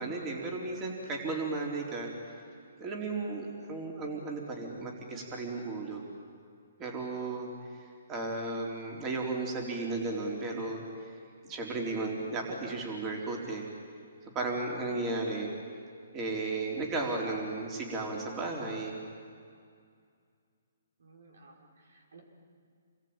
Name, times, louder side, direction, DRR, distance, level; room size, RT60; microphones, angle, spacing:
voice 1, 0.0-2.1 2.8-6.0 6.8-7.5 7.7-10.8 11.5-13.6 14.3-15.5 16.1-19.0, right 3 dB, 20° right, -1 dB, 4.0 m, -34 dB
voice 2, 21.0-22.2, right 3 dB, 75° right, 1 dB, 5.5 m, -57 dB
28.5 x 21.5 x 9.0 m, 2.2 s
hypercardioid pair, 150°, 0 cm